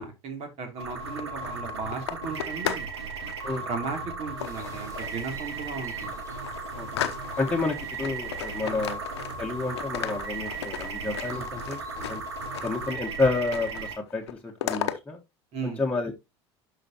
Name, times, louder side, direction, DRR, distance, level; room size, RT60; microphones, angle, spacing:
voice 1, 0.0-2.9 3.6-6.2 8.6-8.8 11.3-11.5 15.5-15.8, right 4 dB, 50° right, 2.8 m, -36 dB
sound 1, 0.8-13.9, right 4 dB, 85° right, 2.1 m, -36 dB
sound 2, 1.0-2.9 3.2-3.6 4.4-5.2 5.7-5.8 6.1-7.6 8.0-9.5 9.8-12.9 13.2-13.8 14.1-15.0, left 11 dB, 80° left, 0.8 m, -35 dB
sound 3, 4.4-12.9, right 2 dB, 25° right, 5.5 m, -51 dB
voice 2, 7.4-9.0 9.4-12.2 12.6-15.2 15.6-16.1, left 3 dB, 10° left, 1.4 m, -30 dB
11.5 x 5.0 x 2.9 m
hypercardioid pair, 75°, 14 cm